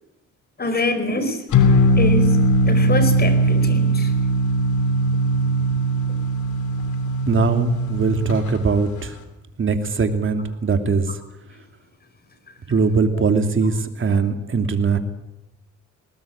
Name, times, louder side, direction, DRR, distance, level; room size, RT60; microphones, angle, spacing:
voice 1, 0.6-1.4 2.0-4.1, left 2 dB, 30° left, 10 dB, 4.6 m, -25 dB
sound 1, 1.5-8.4, right 1 dB, 75° left, 3.1 m, -19 dB
voice 2, 7.3-9.1 9.6-11.1 12.7-15.0, right 4 dB, 40° right, 7 dB, 2.8 m, -20 dB
20.5 x 19.5 x 8.8 m, 0.93 s
cardioid pair, 90°, 30 cm